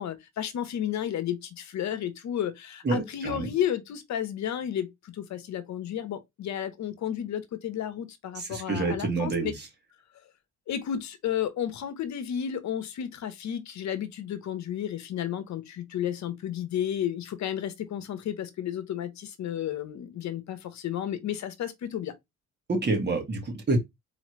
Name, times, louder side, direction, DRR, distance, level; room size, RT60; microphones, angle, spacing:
voice 1, 0.0-9.5 10.7-22.1, left 10 dB, 65° left, 0.9 m, -32 dB
voice 2, 2.8-3.5 8.4-9.5 22.7-23.8, right 3 dB, 35° right, 1.9 m, -28 dB
4.1 x 3.1 x 3.1 m
cardioid pair, 90°, 30 cm